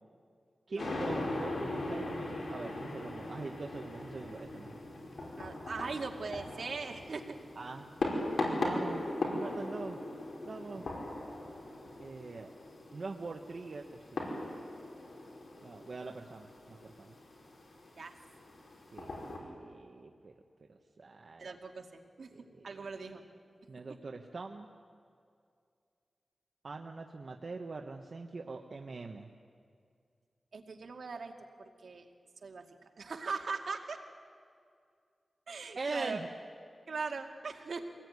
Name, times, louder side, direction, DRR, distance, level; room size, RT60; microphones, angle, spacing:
voice 1, 0.7-4.8 7.5-7.9 8.6-9.0 9.3-10.0 10.4-10.9 12.0-12.5 12.9-14.3 15.6-17.1 18.9-20.3 20.7-21.6 22.3-22.8 23.7-24.7 26.6-29.3 35.7-36.3, right 3 dB, 55° right, 3 dB, 1.2 m, -43 dB
sound 1, 0.8-19.4, left 2 dB, 75° left, 5.1 m, -39 dB
voice 2, 5.4-7.4 18.0-18.1 21.4-22.3 22.6-23.2 30.5-31.3 31.6-32.1 32.4-32.7 33.0-34.0 35.5-36.2 36.9-37.9, right 4 dB, 75° right, 3 dB, 2.3 m, -40 dB
24.5 x 19.5 x 9.7 m, 2.3 s
wide cardioid pair, 120°, 0 cm